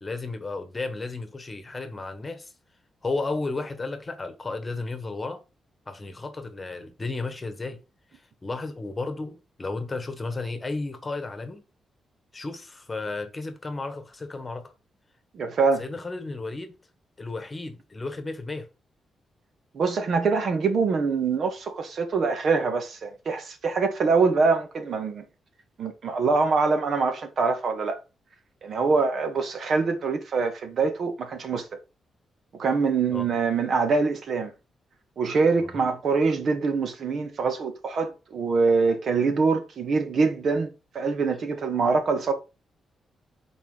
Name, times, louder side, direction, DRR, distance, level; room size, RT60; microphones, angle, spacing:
voice 1, 0.0-2.5 3.0-5.4 5.9-7.8 8.4-11.6 12.3-14.7 15.8-16.7 17.2-18.7 33.1-33.3 35.6-35.8, left 3 dB, 25° left, 1.4 m, -33 dB
voice 2, 15.3-15.8 19.7-25.2 25.8-28.0 28.6-31.7 32.6-34.5 35.2-40.7 40.9-42.3, right 4 dB, 60° right, 1.5 m, -24 dB
5.8 x 4.3 x 5.6 m
cardioid pair, 110°, 0 cm